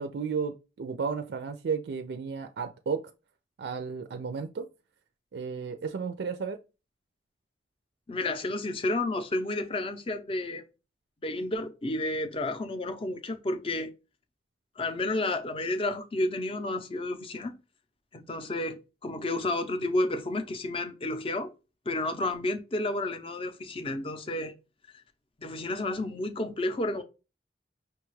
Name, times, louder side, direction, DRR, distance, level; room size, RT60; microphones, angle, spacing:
voice 1, 0.0-3.0 3.6-4.7 5.3-6.6, right 5 dB, 65° right, 0.4 m, -33 dB
voice 2, 8.1-10.6 11.2-13.9 14.8-17.5 18.1-21.5 21.9-24.5 25.4-27.0, left 2 dB, 30° left, 0.5 m, -31 dB
5.5 x 2.3 x 3.1 m
head